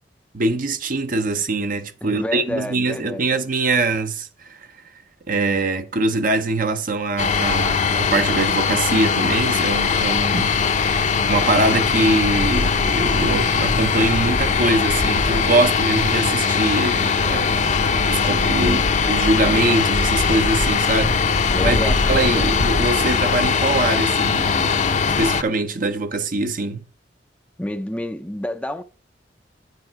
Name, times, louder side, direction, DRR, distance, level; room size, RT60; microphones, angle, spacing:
voice 1, 0.3-4.5 5.3-10.6 11.2-18.8 19.1-24.8 25.2-26.9, right 2 dB, 50° right, 0.9 m, -23 dB
voice 2, 2.0-3.2 18.6-18.9 21.5-22.0 22.3-22.5 27.6-28.8, left 1 dB, 5° left, 0.5 m, -29 dB
sound 1, 7.2-25.4, left 5 dB, 40° left, 0.7 m, -20 dB
9.7 x 6.7 x 4.6 m
head